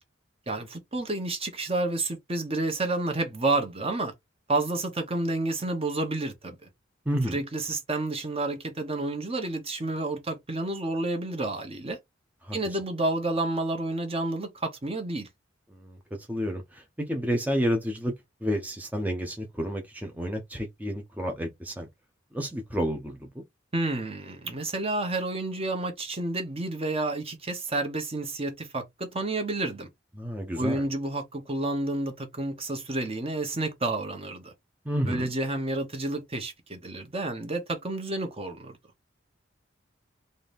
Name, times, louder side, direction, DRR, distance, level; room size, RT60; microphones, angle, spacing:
voice 1, 0.5-4.1 4.5-6.7 7.3-12.0 12.5-15.3 23.7-29.9 30.6-34.5 35.1-38.8, right 2 dB, 30° right, 1.1 m, -30 dB
voice 2, 7.1-7.4 12.4-12.8 15.7-18.2 18.4-21.9 22.3-23.4 30.2-30.9 34.8-35.3, equal, 10° right, 0.7 m, -30 dB
4.0 x 2.6 x 3.4 m
head